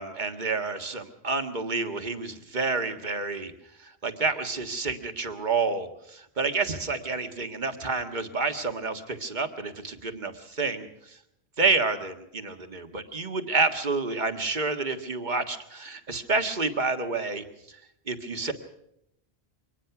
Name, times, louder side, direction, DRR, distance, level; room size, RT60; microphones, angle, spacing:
voice 1, 0.0-3.5 3.8-11.2 11.6-17.8 18.1-18.5, right 3 dB, 45° right, 7 dB, 1.8 m, -29 dB
24.0 x 19.5 x 5.9 m, 0.77 s
omnidirectional pair, 1.0 m